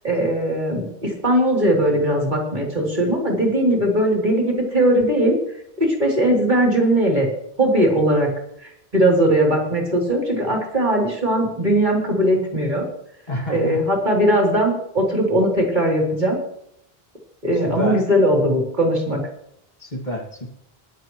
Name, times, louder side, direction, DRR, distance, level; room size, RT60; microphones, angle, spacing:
voice 1, 0.0-5.3 5.8-7.3 7.6-8.3 8.9-12.8 13.5-16.4 17.4-19.2, right 1 dB, 50° right, -1 dB, 3.6 m, -19 dB
voice 2, 13.3-13.8 17.6-18.0 19.8-20.5, equal, 45° left, 0 dB, 2.4 m, -28 dB
20.5 x 11.0 x 3.2 m, 0.74 s
omnidirectional pair, 1.0 m